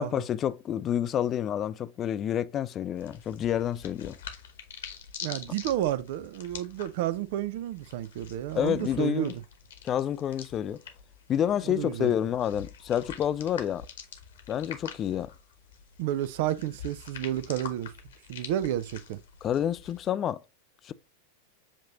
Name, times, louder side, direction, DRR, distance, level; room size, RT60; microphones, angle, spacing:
voice 1, 0.0-4.2 8.5-9.3 9.8-10.8 11.3-13.9 14.5-15.3 19.4-20.4 20.8-20.9, left 10 dB, 30° left, 0.3 m, -29 dB
sound 1, 3.0-20.1, left 7 dB, 60° left, 1.0 m, -46 dB
voice 2, 5.2-9.4 11.6-12.1 16.0-17.9 18.3-19.2, right 12 dB, 50° right, 0.3 m, -31 dB
7.3 x 2.8 x 2.6 m
figure-of-eight pair, 90°, 0 cm